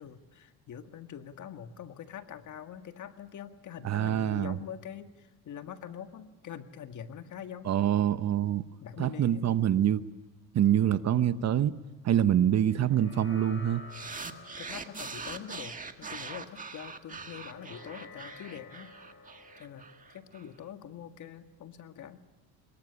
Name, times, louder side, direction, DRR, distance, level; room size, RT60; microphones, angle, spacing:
voice 1, 0.0-7.7 8.8-9.5 14.6-18.9 19.6-22.2, left 9 dB, 50° left, 8 dB, 1.9 m, -44 dB
voice 2, 3.8-4.6 7.7-8.6 9.0-10.0 10.5-11.7 12.0-13.8, right 10 dB, 45° right, 13 dB, 1.0 m, -25 dB
sound 1, 12.7-21.4, left 3 dB, 35° left, 7.9 m, -52 dB
sound 2, 13.9-20.4, right 4 dB, 20° right, 1.7 m, -42 dB
24.0 x 22.0 x 9.8 m, 1.1 s
cardioid pair, 110°, 38 cm